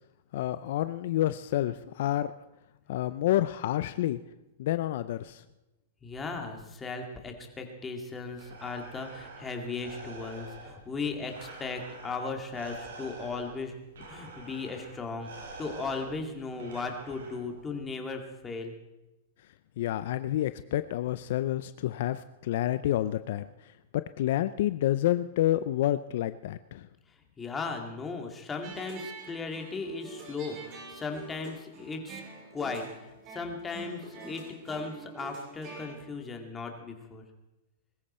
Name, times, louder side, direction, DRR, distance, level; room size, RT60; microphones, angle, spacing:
voice 1, 0.3-2.3 2.9-4.2 4.6-5.4 19.8-23.4 24.2-26.9, left 13 dB, 65° left, 13 dB, 0.5 m, -29 dB
voice 2, 6.0-13.7 14.1-15.3 15.6-18.8 27.4-32.2 32.5-32.9 33.3-37.2, left 4 dB, 15° left, 3 dB, 2.2 m, -37 dB
Breathing, 8.1-17.8, right 3 dB, 90° right, 5.1 m, -47 dB
sound 1, 28.6-36.0, right 3 dB, 40° right, 6.2 m, -46 dB
21.5 x 14.0 x 4.4 m, 1.0 s
hypercardioid pair, 145°, 0 cm